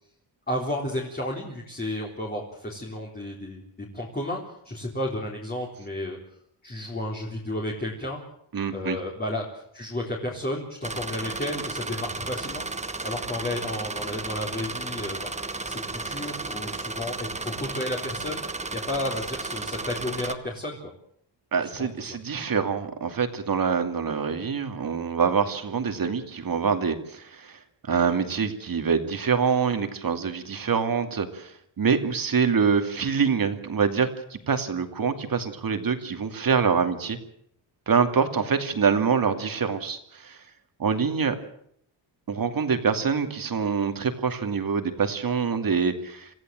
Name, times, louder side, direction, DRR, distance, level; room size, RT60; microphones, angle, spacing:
voice 1, 0.5-3.6 3.9-4.4 4.6-6.2 6.6-8.2 8.7-9.5 9.7-12.7 13.0-15.3 15.7-18.4 18.7-20.8 21.6-22.2, left 1 dB, 20° left, -2 dB, 3.8 m, -32 dB
voice 2, 8.5-9.0 21.5-27.6 27.9-37.2 37.9-40.4 40.8-41.4 42.3-46.3, right 6 dB, 45° right, 7 dB, 2.5 m, -25 dB
sound 1, 10.8-20.3, right 3 dB, 15° right, 1.3 m, -34 dB
27.0 x 15.0 x 7.7 m, 0.71 s
cardioid pair, 115°, 46 cm